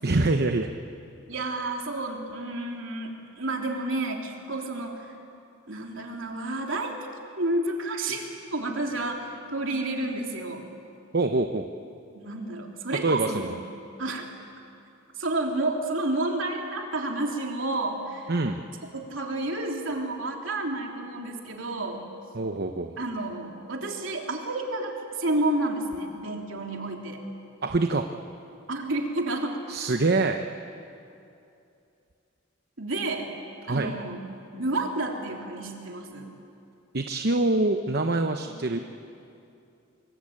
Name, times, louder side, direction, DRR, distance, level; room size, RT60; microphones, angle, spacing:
voice 1, 0.0-0.7 11.1-11.7 13.0-13.6 18.3-18.6 22.3-23.0 27.6-28.1 29.7-30.4 33.7-33.9 36.9-38.8, right 2 dB, 50° right, 5 dB, 0.9 m, -25 dB
voice 2, 1.3-5.1 5.7-6.9 7.4-10.6 12.1-13.5 14.0-14.3 15.2-18.3 18.9-22.1 23.0-27.2 28.7-29.6 32.8-33.3 33.7-34.2 34.5-36.3 38.5-38.8, right 2 dB, 70° right, 1 dB, 3.4 m, -30 dB
24.5 x 23.0 x 8.9 m, 2.6 s
head